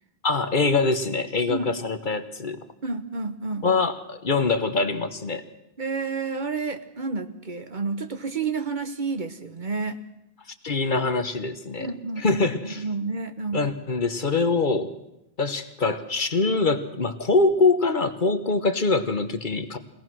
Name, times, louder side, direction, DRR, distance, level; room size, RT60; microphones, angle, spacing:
voice 1, 0.2-2.6 3.6-5.4 10.6-11.9 12.2-12.8 13.5-14.9 15.4-19.8, left 3 dB, 50° left, 9 dB, 1.3 m, -24 dB
voice 2, 2.8-3.7 5.8-10.0 11.8-12.4 12.7-13.6, right 4 dB, 50° right, 9 dB, 1.2 m, -30 dB
23.5 x 18.0 x 6.2 m, 0.87 s
omnidirectional pair, 1.1 m